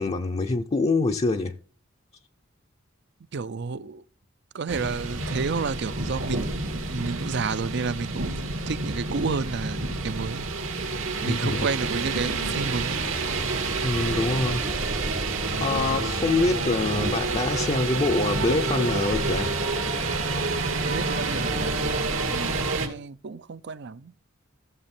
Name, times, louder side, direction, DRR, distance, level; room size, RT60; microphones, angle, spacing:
voice 1, 0.0-1.5 11.3-11.7 13.8-14.6 15.6-19.5, left 3 dB, 30° left, 0.6 m, -25 dB
voice 2, 3.3-4.0 4.5-10.5 11.2-13.0 20.8-21.8 22.2-24.1, right 4 dB, 60° right, 0.5 m, -31 dB
sound 1, 4.7-22.9, right 3 dB, 85° right, 2.4 m, -28 dB
sound 2, 12.1-17.9, right 1 dB, 25° right, 0.7 m, -39 dB
15.0 x 6.7 x 4.3 m
head